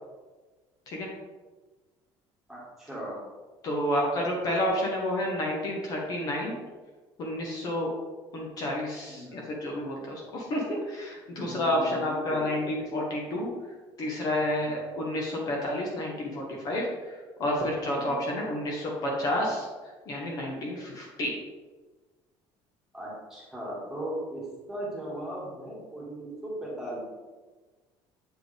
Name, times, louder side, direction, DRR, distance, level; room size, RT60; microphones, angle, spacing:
voice 1, 2.5-3.2 9.1-9.4 11.3-12.6 14.6-14.7 17.9-18.2 22.9-27.0, right 1 dB, 5° right, -6 dB, 1.8 m, -38 dB
voice 2, 3.6-6.5 7.2-7.9 8.3-13.5 14.0-19.7 20.1-21.4, left 1 dB, 40° left, -2 dB, 1.2 m, -30 dB
7.9 x 4.8 x 3.4 m, 1.3 s
cardioid pair, 170°, 10 cm